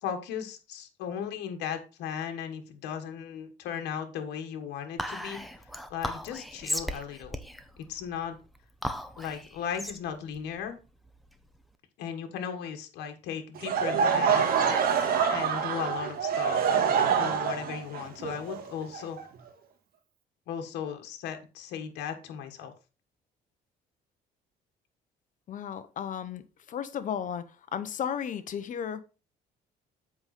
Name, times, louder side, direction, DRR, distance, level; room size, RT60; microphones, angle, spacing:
voice 1, 0.0-7.4 7.8-8.4 9.2-10.8 12.0-14.7 15.3-19.2 20.5-22.7, left 8 dB, 85° left, 1.5 m, -37 dB
Whispering, 5.0-11.6, equal, ahead, 0.9 m, -37 dB
Laughter / Crowd, 13.6-19.5, right 7 dB, 60° right, 1.6 m, -26 dB
voice 2, 25.5-26.4 26.7-29.0, left 8 dB, 50° left, 1.0 m, -34 dB
7.8 x 5.3 x 4.2 m
cardioid pair, 110°, 17 cm